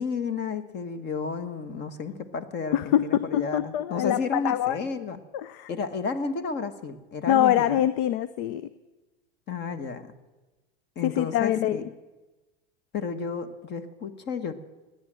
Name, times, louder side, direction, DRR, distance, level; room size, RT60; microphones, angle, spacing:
voice 1, 0.0-5.2 5.7-7.8 9.5-10.1 10.9-11.8 12.9-14.5, left 5 dB, 30° left, 12 dB, 1.4 m, -32 dB
voice 2, 2.7-4.8 5.3-5.7 7.3-8.7 11.0-11.8, left 11 dB, 55° left, 15 dB, 0.7 m, -24 dB
17.5 x 10.5 x 7.6 m, 1.2 s
supercardioid pair, 120°, 33 cm